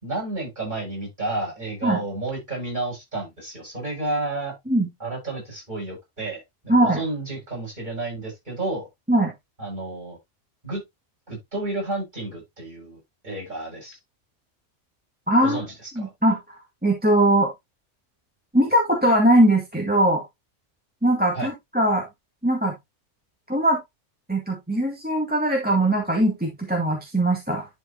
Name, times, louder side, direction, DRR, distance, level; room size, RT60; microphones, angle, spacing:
voice 1, 0.0-4.5 5.0-8.9 9.6-10.2 10.6-10.8 11.3-14.0 15.4-16.1 21.3-21.5, right 2 dB, 40° right, 6.8 m, -31 dB
voice 2, 6.7-7.0 9.1-9.3 15.3-15.6 16.0-16.4 16.8-17.5 18.5-20.2 21.0-22.1 22.4-22.7 23.5-23.8 24.3-27.7, right 1 dB, 5° right, 1.8 m, -20 dB
11.0 x 5.1 x 2.8 m
omnidirectional pair, 1.3 m